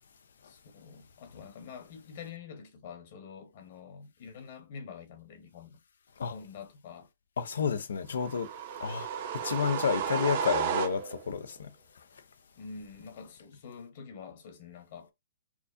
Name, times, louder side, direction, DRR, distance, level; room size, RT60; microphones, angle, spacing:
voice 1, 0.4-5.8 6.3-7.1 10.1-10.2 12.6-15.1, left 6 dB, 50° left, 1.3 m, -46 dB
voice 2, 7.4-8.5 8.8-9.1 9.4-11.7, left 6 dB, 80° left, 0.6 m, -30 dB
sound 1, 8.2-11.4, right 8 dB, 45° right, 0.8 m, -33 dB
4.5 x 2.5 x 2.5 m
hypercardioid pair, 155°, 0 cm